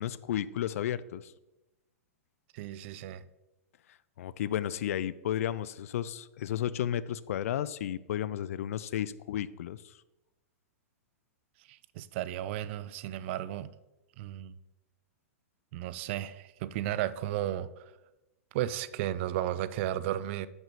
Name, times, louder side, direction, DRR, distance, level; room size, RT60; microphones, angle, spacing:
voice 1, 0.0-1.3 4.2-9.9, left 11 dB, 70° left, 0.4 m, -33 dB
voice 2, 2.5-3.2 11.7-13.7 14.2-14.5 15.7-17.9 18.5-20.5, right 12 dB, 50° right, 0.4 m, -34 dB
5.8 x 5.5 x 5.3 m
hypercardioid pair, 120°, 8 cm